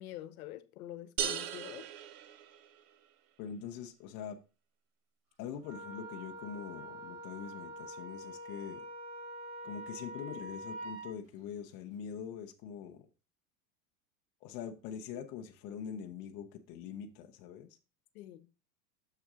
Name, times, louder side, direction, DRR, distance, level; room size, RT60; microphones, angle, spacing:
voice 1, 0.0-1.9 18.1-18.5, left 13 dB, 65° left, 0.9 m, -46 dB
sound 1, 1.2-3.0, right 9 dB, 60° right, 0.9 m, -38 dB
voice 2, 3.4-4.4 5.4-8.9 9.6-13.0 14.4-17.7, left 8 dB, 25° left, 0.4 m, -43 dB
Wind instrument woodwind instrument, 5.6-11.1, right 1 dB, 40° right, 2.4 m, -45 dB
6.6 x 5.8 x 3.6 m
supercardioid pair, 155°, 47 cm